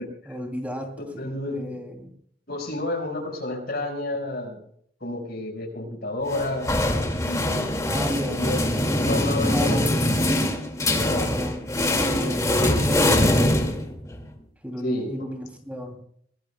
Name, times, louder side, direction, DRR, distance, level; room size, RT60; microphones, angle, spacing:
voice 1, 0.0-2.1 7.8-8.5 8.7-9.9 11.1-13.9 14.6-16.0, equal, 10° right, 3 dB, 2.8 m, -34 dB
voice 2, 1.2-1.8 2.5-4.6 5.0-6.7 7.2-8.6 8.9-10.2 10.9-11.4 14.8-15.2, left 1 dB, 55° left, 3 dB, 5.2 m, -31 dB
sound 1, 6.3-14.2, left 1 dB, 20° left, 2.2 m, -23 dB
23.0 x 19.0 x 2.3 m, 0.64 s
head